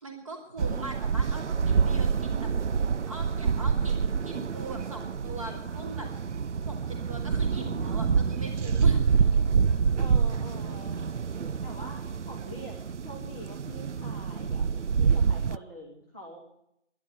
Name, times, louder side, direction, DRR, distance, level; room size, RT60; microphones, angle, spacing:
voice 1, 0.0-2.5 3.1-6.1 6.6-9.4, right 1 dB, 25° right, 1 dB, 2.9 m, -41 dB
sound 1, 0.6-15.6, right 6 dB, 75° right, 0.5 m, -27 dB
voice 2, 10.0-11.0 11.6-14.7 15.0-16.4, equal, 10° right, -5 dB, 1.0 m, -44 dB
11.5 x 11.0 x 10.0 m, 0.76 s
figure-of-eight pair, 160°, 36 cm